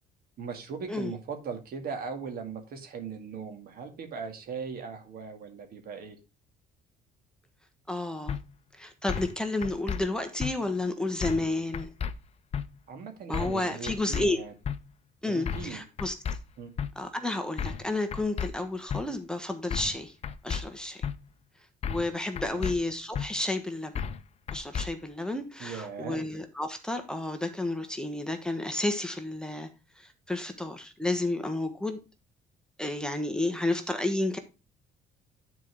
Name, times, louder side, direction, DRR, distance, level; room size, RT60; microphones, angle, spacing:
voice 1, 0.4-6.2 12.9-14.5 15.3-15.8 16.6-16.7 22.4-22.8 25.6-26.2, right 5 dB, 60° right, 2.1 m, -39 dB
voice 2, 7.9-8.4 8.7-11.9 13.3-14.4 15.2-16.1 16.9-20.1 20.4-21.1 21.9-23.9 24.5-29.7 30.0-32.0 32.8-34.4, left 2 dB, 5° left, 1.2 m, -31 dB
sound 1, 8.3-8.4 9.1-9.3 9.6-10.0 10.4-10.5 11.2-11.5 11.7-12.1 12.5-12.6 13.3-13.6 13.9-14.2 14.6-14.8 15.5-15.7 16.0-16.4 16.8-16.9 17.6-17.8 18.1-18.5 18.9-19.0 19.7-20.0 20.2-20.6 21.0-21.1 21.8-22.1 22.4-22.7 23.1-23.3 23.9-24.2 24.5-24.9, left 7 dB, 40° left, 0.7 m, -32 dB
9.6 x 4.6 x 4.7 m
cardioid pair, 110°, 17 cm